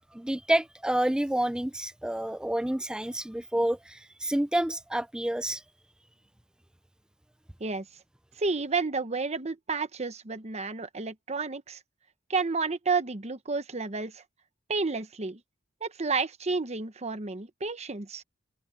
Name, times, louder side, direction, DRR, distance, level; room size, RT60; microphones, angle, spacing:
voice 1, 0.1-5.6, right 1 dB, 5° right, 0.3 m, -29 dB
voice 2, 8.4-11.8 12.3-14.2 14.7-15.4 15.8-18.2, right 4 dB, 35° right, 1.0 m, -31 dB
head